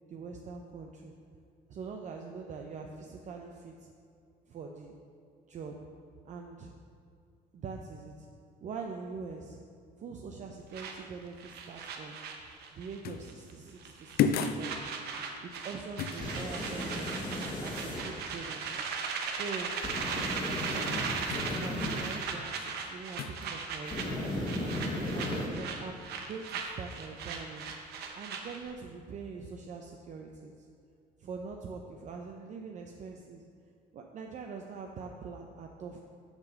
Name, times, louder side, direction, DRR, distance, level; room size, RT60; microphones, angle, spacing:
voice 1, 0.1-1.1 1.7-3.9 4.5-5.0 5.5-5.8 6.2-6.7 7.5-8.3 8.6-9.6 10.0-12.2 12.7-14.9 15.4-17.1 17.6-18.8 19.3-21.0 21.6-24.7 25.1-26.0 26.3-27.7 28.2-30.6 31.2-33.4 33.9-36.0, right 5 dB, 45° right, 2 dB, 0.5 m, -43 dB
sound 1, 10.7-13.0 13.3-13.5 13.8-28.7, right 5 dB, 75° right, 0.8 m, -38 dB
sound 2, 13.0-13.3 14.2-14.7 16.0-16.2 21.3-21.6 23.2-23.5, left 7 dB, 65° left, 0.4 m, -30 dB
sound 3, 16.1-18.0 19.8-22.1 23.9-25.5, left 1 dB, 30° left, 1.5 m, -36 dB
7.1 x 3.9 x 6.4 m, 2.3 s
cardioid pair, 110°, 17 cm